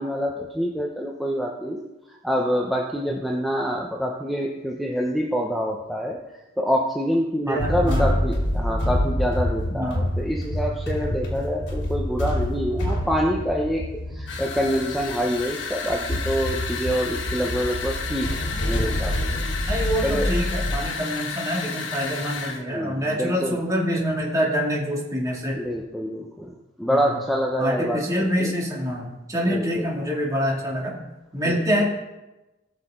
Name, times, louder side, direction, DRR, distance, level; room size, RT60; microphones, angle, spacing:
voice 1, 0.0-6.2 6.6-13.8 14.1-19.4 20.0-20.3 22.7-23.6 25.5-28.6 29.5-29.8 31.4-31.6, equal, ahead, -2 dB, 0.8 m, -26 dB
voice 2, 7.4-8.1 9.7-10.1 19.7-25.6 26.9-27.2 27.6-31.0 31.3-31.9, equal, 20° right, -3 dB, 2.5 m, -26 dB
sound 1, 7.6-20.8, equal, 75° left, 2.8 m, -27 dB
sound 2, 14.3-22.6, left 5 dB, 90° left, 1.2 m, -32 dB
18.5 x 6.6 x 3.8 m, 1.0 s
head